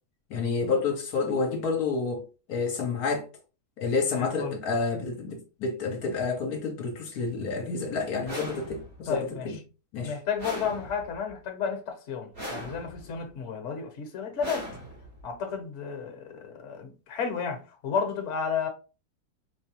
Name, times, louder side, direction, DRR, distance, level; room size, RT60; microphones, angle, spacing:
voice 1, 0.3-3.2 3.8-9.6 9.9-10.2, left 4 dB, 75° left, 1.2 m, -29 dB
voice 2, 4.1-4.5 9.1-9.5 10.0-14.7 15.2-18.7, left 6 dB, 55° left, 1.1 m, -32 dB
sound 1, 8.2-9.1 10.4-11.3 12.3-13.2 14.4-15.3, equal, 80° right, 2.6 m, -39 dB
4.6 x 2.3 x 2.8 m
omnidirectional pair, 1.6 m